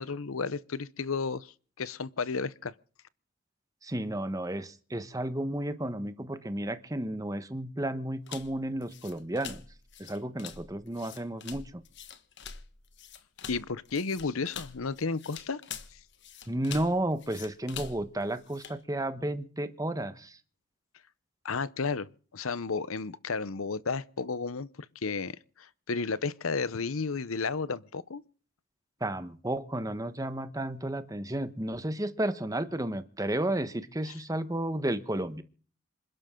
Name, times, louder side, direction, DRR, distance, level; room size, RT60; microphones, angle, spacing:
voice 1, 0.0-2.7 13.5-15.6 21.4-24.7 25.0-28.2, left 4 dB, 75° left, 0.8 m, -33 dB
voice 2, 3.8-9.6 10.1-11.6 16.5-20.4 29.0-35.4, right 1 dB, 15° right, 1.2 m, -32 dB
sound 1, 8.3-18.8, left 7 dB, 55° left, 1.4 m, -45 dB
27.0 x 12.0 x 3.8 m
head